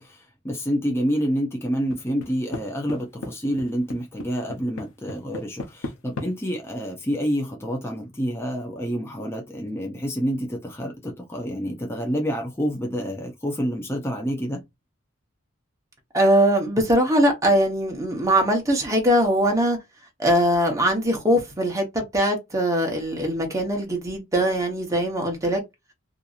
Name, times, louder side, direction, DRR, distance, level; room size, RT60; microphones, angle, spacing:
voice 1, 0.0-14.6, equal, 10° left, 0.6 m, -28 dB
sound 1, 1.9-2.6 2.9-3.3 3.6-6.3, left 2 dB, 90° left, 0.7 m, -33 dB
voice 2, 16.1-19.8 20.2-25.6, equal, 15° right, 0.9 m, -21 dB
2.8 x 2.6 x 2.4 m
head